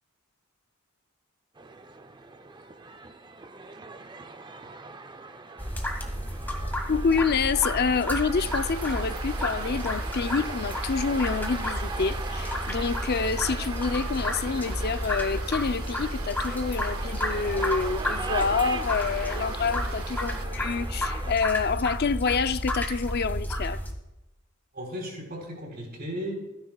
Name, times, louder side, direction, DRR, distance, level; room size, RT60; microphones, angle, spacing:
sound 1, 1.6-21.4, right 3 dB, 20° right, 0.6 m, -40 dB
sound 2, 5.6-23.9, equal, 10° left, 1.9 m, -31 dB
voice 1, 6.9-23.8, left 5 dB, 50° left, 0.5 m, -27 dB
sound 3, 8.4-20.4, right 4 dB, 90° right, 1.7 m, -43 dB
voice 2, 24.7-26.3, equal, 50° right, 3.8 m, -35 dB
28.0 x 10.5 x 2.4 m
head